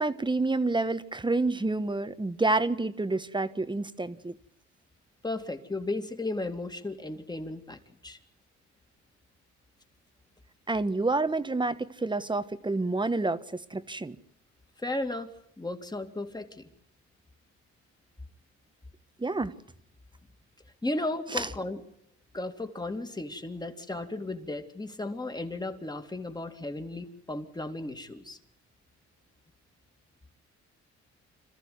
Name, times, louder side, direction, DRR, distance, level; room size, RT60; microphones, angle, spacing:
voice 1, 0.0-4.4 10.7-13.4 13.7-14.2 19.2-19.5 21.3-21.5, right 2 dB, 15° right, 12 dB, 1.3 m, -28 dB
voice 2, 5.2-8.2 14.8-15.3 15.6-16.7 20.8-21.8 22.3-28.4, left 2 dB, 15° left, 6 dB, 2.6 m, -35 dB
27.0 x 14.5 x 9.5 m, 0.75 s
cardioid pair, 90°, 30 cm